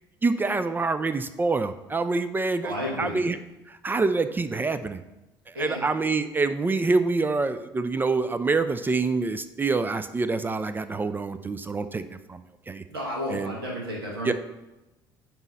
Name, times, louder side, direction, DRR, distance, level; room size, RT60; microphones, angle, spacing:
voice 1, 0.2-3.4 3.7-5.0 5.5-12.8 13.3-13.6 14.2-14.3, right 3 dB, 15° right, 12 dB, 0.4 m, -26 dB
voice 2, 2.6-3.2 5.5-5.8 12.9-14.3, equal, 75° right, -2 dB, 1.4 m, -32 dB
9.0 x 3.0 x 5.3 m, 1.0 s
figure-of-eight pair, 60°, 13 cm